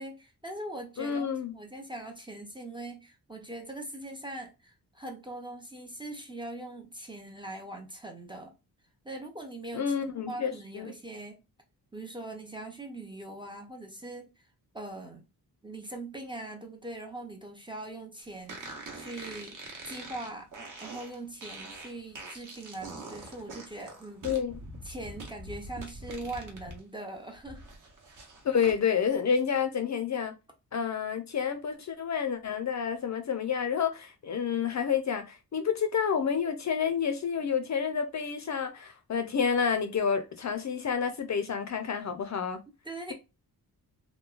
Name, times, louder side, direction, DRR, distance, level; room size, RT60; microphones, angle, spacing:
voice 1, 0.0-1.3 1.5-8.5 9.0-11.4 11.9-14.3 14.7-15.2 15.6-19.6 19.8-20.5 20.8-24.3 24.8-27.6 42.8-43.1, right 2 dB, 15° right, 0.4 m, -41 dB
voice 2, 1.0-1.5 9.7-10.9 24.2-24.6 28.4-30.3 30.7-42.6, left 7 dB, 45° left, 0.4 m, -29 dB
sound 1, 18.5-26.8 27.1-28.8, right 2 dB, 50° right, 0.8 m, -44 dB
3.0 x 2.2 x 2.3 m
wide cardioid pair, 135°, 39 cm